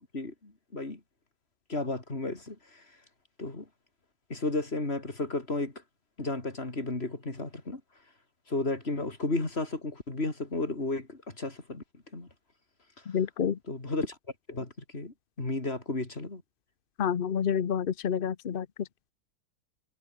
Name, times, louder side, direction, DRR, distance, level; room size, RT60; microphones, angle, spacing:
voice 1, 0.1-1.0 1.7-2.8 3.4-3.6 4.3-5.7 6.2-7.8 8.5-11.8 12.1-12.3 13.7-14.2 14.5-16.4, left 2 dB, 30° left, 3.8 m, -33 dB
voice 2, 13.1-13.6 17.0-18.9, left 8 dB, 75° left, 0.5 m, -29 dB
omnidirectional pair, 2.2 m